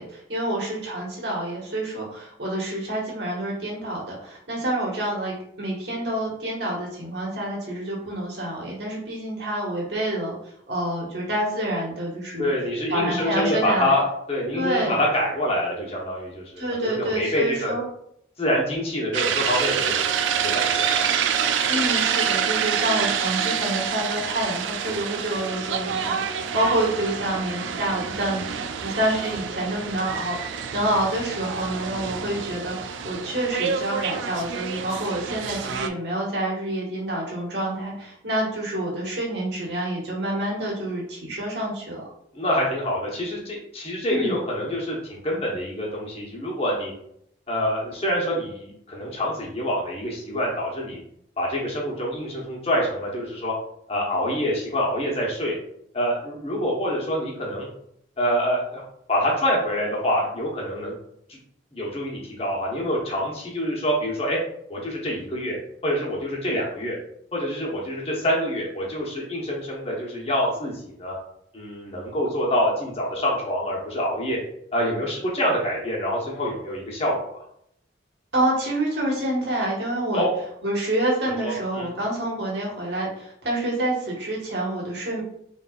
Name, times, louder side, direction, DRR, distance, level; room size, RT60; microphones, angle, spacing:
voice 1, 0.0-10.3 10.7-12.5 12.9-13.9 14.5-15.0 16.6-17.8 21.7-28.5 28.8-42.0 44.1-44.3 78.3-80.3 80.6-85.2, right 1 dB, 65° right, -5 dB, 1.5 m, -27 dB
voice 2, 12.4-17.7 18.4-20.0 20.3-21.0 42.3-46.9 47.5-51.0 51.4-53.5 53.9-55.6 55.9-57.7 58.2-58.8 59.1-60.9 61.3-61.4 61.7-64.4 64.7-65.6 65.8-67.0 67.3-71.2 71.5-74.4 74.7-77.4 80.1-80.3 81.4-81.9, equal, 30° left, -3 dB, 1.1 m, -26 dB
sound 1, 19.1-35.9, right 7 dB, 85° right, 0.3 m, -27 dB
4.1 x 3.4 x 2.4 m, 0.72 s
head